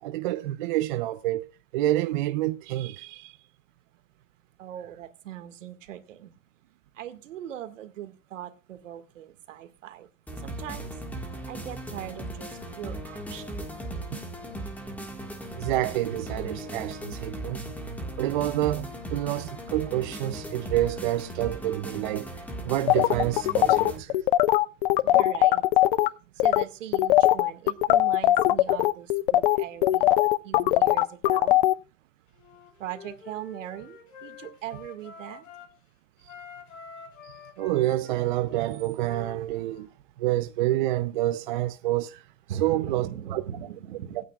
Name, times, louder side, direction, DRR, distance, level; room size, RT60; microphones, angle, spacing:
voice 1, 0.0-3.4 15.6-17.6 18.2-22.3 22.6-24.2 37.2-39.9 40.2-42.2 42.6-43.4 44.2-44.3, right 15 dB, 40° right, 0.5 m, -28 dB
voice 2, 4.6-6.4 6.9-10.1 10.4-10.9 11.5-13.5 25.0-25.6 26.3-31.6 32.8-35.4 42.5-44.2, right 11 dB, 70° right, 2.0 m, -40 dB
sound 1, 10.3-24.0, right 1 dB, 5° left, 1.7 m, -37 dB
sound 2, 22.9-26.1 26.4-26.6 26.9-31.7, left 15 dB, 45° left, 0.5 m, -20 dB
Wind instrument woodwind instrument, 32.4-35.8 36.2-39.9, left 5 dB, 90° left, 3.7 m, -47 dB
24.5 x 9.3 x 2.4 m
supercardioid pair, 155°, 39 cm